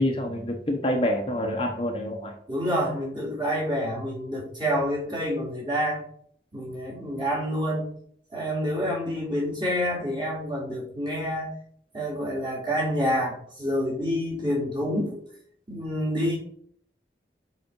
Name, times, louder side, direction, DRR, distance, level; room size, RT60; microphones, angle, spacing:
voice 1, 0.0-2.3, left 1 dB, 30° left, 2 dB, 0.9 m, -26 dB
voice 2, 2.5-6.0 6.5-7.9 8.3-11.5 11.9-15.2 15.7-16.4, equal, 25° right, -4 dB, 3.3 m, -28 dB
7.0 x 5.6 x 4.7 m, 0.63 s
head